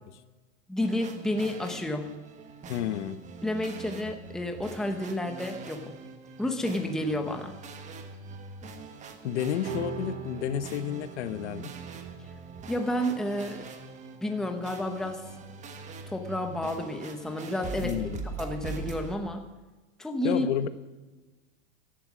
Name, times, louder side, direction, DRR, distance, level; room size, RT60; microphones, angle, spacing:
voice 1, 0.7-2.2 3.4-6.0 6.4-7.5 12.7-13.7 14.2-15.2 16.1-18.0 18.4-19.4 20.0-20.5, left 1 dB, ahead, 4 dB, 0.9 m, -30 dB
sound 1, 0.8-19.2, right 4 dB, 20° right, 1.3 m, -43 dB
voice 2, 2.7-3.2 9.2-11.7 17.8-18.2 20.2-20.7, left 10 dB, 65° left, 12 dB, 1.1 m, -31 dB
sound 2, 9.6-16.4, right 7 dB, 70° right, 2.1 m, -43 dB
15.5 x 11.5 x 6.1 m, 1.2 s
supercardioid pair, 155°, 37 cm